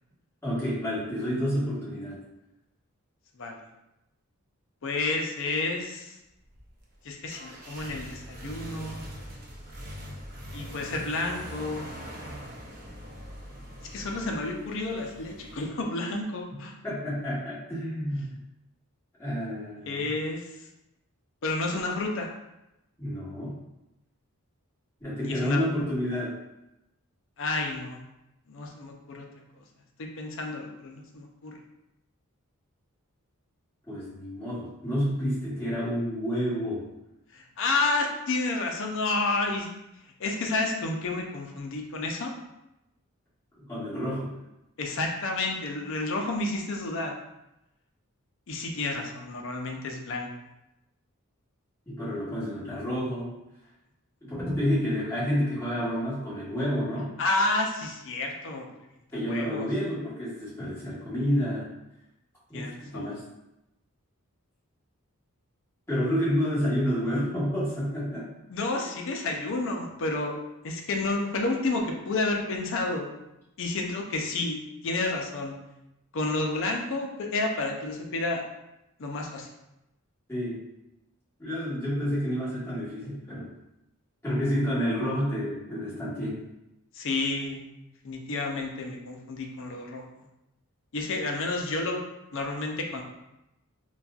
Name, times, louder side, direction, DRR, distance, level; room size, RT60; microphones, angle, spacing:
voice 1, 0.4-2.2 16.8-18.4 19.2-20.1 23.0-23.5 25.0-26.3 33.9-36.8 43.6-44.3 51.9-53.3 54.2-57.1 59.1-61.7 62.5-63.2 65.9-68.3 80.3-80.6 81.4-83.5 84.2-86.4, equal, 10° left, -9 dB, 1.2 m, -29 dB
voice 2, 4.8-6.2 7.0-9.1 10.5-11.9 13.9-16.8 19.9-20.6 21.4-22.3 25.2-25.6 27.4-28.0 28.5-29.3 29.6-29.7 30.0-31.6 37.3-39.7 40.2-42.4 44.8-47.2 48.5-50.3 57.2-58.7 59.1-59.7 62.5-63.1 68.5-70.4 70.6-73.2 73.6-75.6 76.1-78.4 79.0-79.5 86.9-87.6 88.0-90.0 90.9-92.0 92.3-93.0, left 2 dB, 60° left, 2 dB, 0.5 m, -30 dB
sound 1, 6.4-15.7, equal, 40° right, 0.5 m, -42 dB
4.0 x 2.3 x 2.3 m, 0.91 s
head